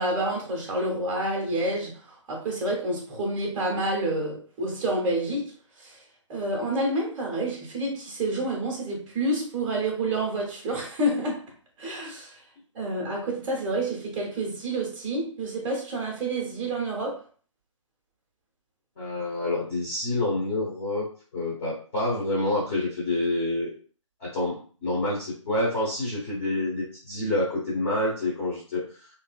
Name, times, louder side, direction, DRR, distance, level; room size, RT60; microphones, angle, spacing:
voice 1, 0.0-5.5 5.8-6.0 6.3-11.4 11.8-12.4 12.7-17.2, right 1 dB, 10° right, 0.6 m, -28 dB
voice 2, 19.0-21.0 21.3-23.7 24.2-28.8, left 2 dB, 25° left, 0.7 m, -27 dB
2.7 x 2.5 x 2.2 m
figure-of-eight pair, 140°, 17 cm